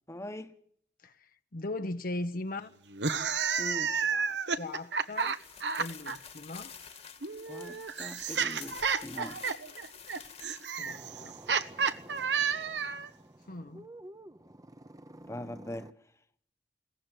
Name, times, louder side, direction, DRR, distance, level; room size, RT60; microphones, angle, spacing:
voice 1, 0.1-0.6 3.6-4.0 7.5-9.4 15.3-15.9, left 1 dB, 15° left, 1.2 m, -41 dB
voice 2, 1.0-2.8 4.1-5.4 5.8-6.7 10.8-11.4 13.5-13.9, left 2 dB, 55° left, 1.0 m, -39 dB
sound 1, 2.9-6.2 7.2-13.1, right 6 dB, 80° right, 1.3 m, -31 dB
sound 2, 5.1-11.0, left 7 dB, 35° left, 1.7 m, -49 dB
sound 3, 10.8-15.9, right 1 dB, 20° right, 0.9 m, -51 dB
22.0 x 18.0 x 9.2 m
head